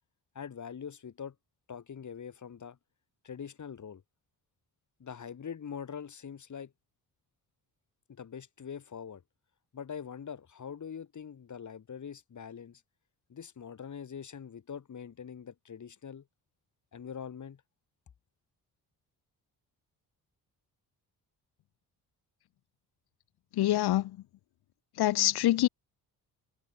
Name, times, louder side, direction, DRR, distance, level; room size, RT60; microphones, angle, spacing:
voice 1, 0.3-1.3 1.7-2.8 3.2-4.0 5.0-6.7 8.1-9.2 9.7-12.8 13.3-16.2 16.9-17.6, left 7 dB, 45° left, 2.8 m, -43 dB
voice 2, 23.6-24.1 25.0-25.7, left 14 dB, 75° left, 1.0 m, -25 dB
cardioid pair, 80°, 39 cm